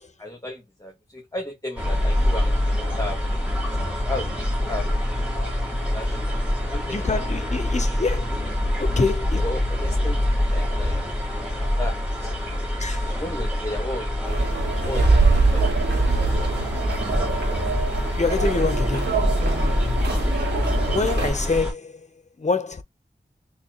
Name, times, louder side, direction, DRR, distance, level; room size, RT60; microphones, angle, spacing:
voice 1, 0.2-3.4 3.7-3.8 4.0-4.9 5.8-7.2 8.3-12.8 13.0-14.4 14.8-15.8 16.2-16.6, left 1 dB, 20° left, 1.7 m, -36 dB
sound 1, 1.8-21.7, left 1 dB, 5° right, 2.5 m, -25 dB
voice 2, 6.9-8.5 8.8-9.4 12.8-13.1 18.1-19.1 20.9-21.9 22.4-22.8, left 3 dB, 40° left, 0.7 m, -25 dB
sound 2, 14.2-21.3, right 3 dB, 75° right, 1.9 m, -23 dB
4.0 x 3.2 x 3.0 m
cardioid pair, 40°, 18 cm